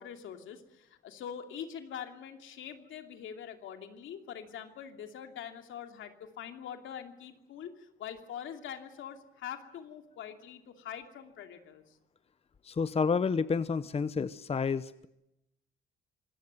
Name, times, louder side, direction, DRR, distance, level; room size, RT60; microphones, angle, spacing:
voice 1, 0.0-12.0, left 8 dB, 80° left, 5 dB, 2.8 m, -44 dB
voice 2, 12.6-15.1, left 5 dB, 30° left, 14 dB, 0.8 m, -30 dB
25.5 x 18.0 x 9.5 m, 0.86 s
cardioid pair, 90°, 20 cm